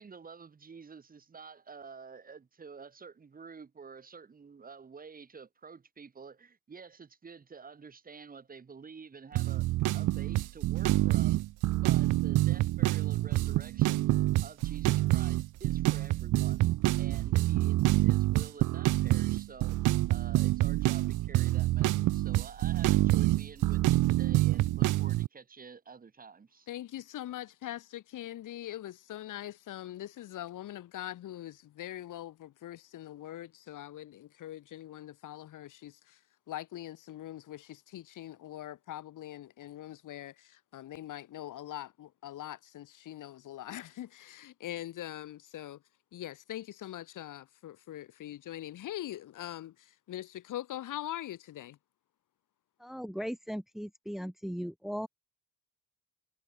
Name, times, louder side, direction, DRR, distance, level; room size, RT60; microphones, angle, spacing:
voice 1, 0.0-11.4 11.8-14.1 14.4-16.6 17.0-19.8 20.1-26.7, right 5 dB, 25° right, 3.5 m, -49 dB
sound 1, 9.3-25.3, right 17 dB, 60° right, 0.6 m, -27 dB
voice 2, 26.7-36.2 36.5-45.8 46.1-51.8, left 13 dB, 60° left, 2.9 m, -42 dB
voice 3, 52.8-55.1, equal, ahead, 2.6 m, -37 dB
cardioid pair, 155°, 35 cm